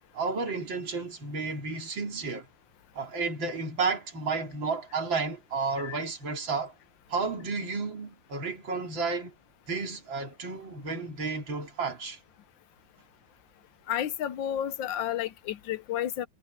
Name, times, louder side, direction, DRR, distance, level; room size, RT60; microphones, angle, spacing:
voice 1, 0.1-2.5 2.9-6.7 7.1-9.3 9.7-12.2, right 4 dB, 80° right, 3.7 m, -32 dB
voice 2, 13.9-16.3, left 10 dB, 80° left, 1.5 m, -31 dB
omnidirectional pair, 2.1 m